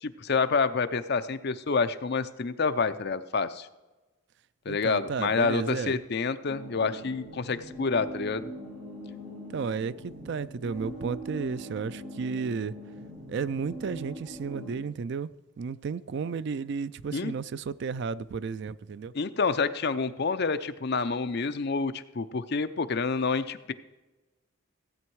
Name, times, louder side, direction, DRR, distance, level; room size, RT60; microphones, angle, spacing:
voice 1, 0.0-3.7 4.7-8.5 17.1-17.3 19.1-23.7, left 4 dB, 50° left, 0.6 m, -28 dB
voice 2, 4.7-6.0 9.5-12.7 13.3-15.3 15.6-19.1, right 5 dB, 55° right, 0.3 m, -33 dB
sound 1, 6.5-14.7, right 1 dB, 30° right, 4.4 m, -42 dB
16.0 x 8.6 x 4.7 m
head